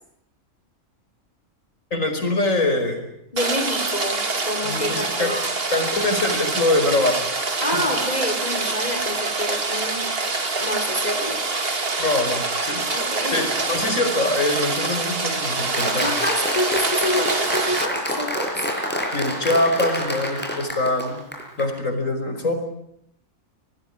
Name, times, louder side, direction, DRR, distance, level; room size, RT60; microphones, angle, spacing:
voice 1, 1.9-3.1 4.6-5.3 5.7-7.2 7.7-7.8 12.0-13.0 13.3-16.1 18.6-18.7 19.1-21.2 21.6-22.5, left 2 dB, 75° left, 7 dB, 5.4 m, -23 dB
voice 2, 3.3-5.6 7.6-10.1 10.6-11.9 12.9-13.5 15.8-18.7, left 1 dB, 30° left, 6 dB, 3.5 m, -28 dB
Rain, 3.4-17.9, right 3 dB, 45° right, 2.5 m, -25 dB
Applause, 15.7-21.7, equal, 5° left, 6.2 m, -27 dB
26.0 x 19.5 x 10.0 m, 0.75 s
omnidirectional pair, 1.4 m